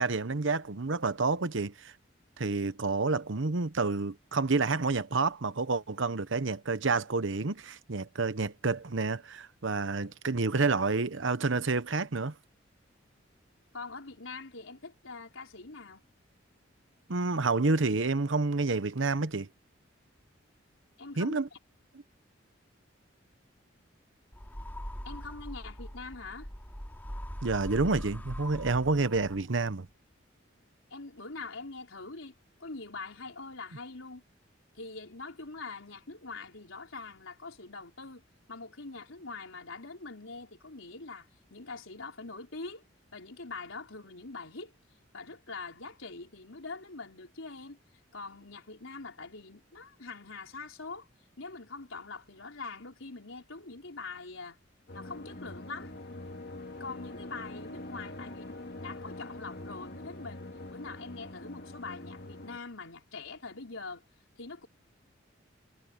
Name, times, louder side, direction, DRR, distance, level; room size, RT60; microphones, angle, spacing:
voice 1, 0.0-1.9 2.4-12.3 17.1-19.5 21.2-21.5 27.4-29.9, right 3 dB, 75° right, 1.0 m, -29 dB
voice 2, 13.7-16.0 21.0-21.6 25.1-26.5 30.9-32.3 32.6-34.2 34.7-38.2 38.5-42.8 43.1-44.7 45.1-47.8 48.1-51.1 51.4-54.6 54.9-55.9 56.8-64.0 64.4-64.7, left 3 dB, 90° left, 4.2 m, -43 dB
sound 1, 24.3-29.6, equal, 10° left, 2.5 m, -41 dB
sound 2, 54.9-62.6, left 2 dB, 55° left, 2.0 m, -44 dB
head